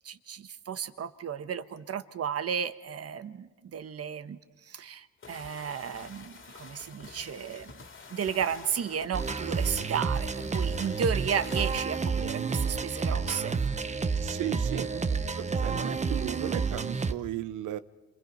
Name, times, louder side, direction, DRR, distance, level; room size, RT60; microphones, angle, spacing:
voice 1, 0.0-7.8 8.1-13.6, right 7 dB, 50° right, 12 dB, 1.3 m, -33 dB
sound 1, 5.2-11.8, left 4 dB, 45° left, 2.7 m, -48 dB
sound 2, 9.1-17.1, right 5 dB, 25° right, 1.0 m, -30 dB
voice 2, 14.2-17.8, right 13 dB, 85° right, 13 dB, 1.0 m, -36 dB
28.0 x 26.0 x 5.5 m, 1.2 s
cardioid pair, 90°, 30 cm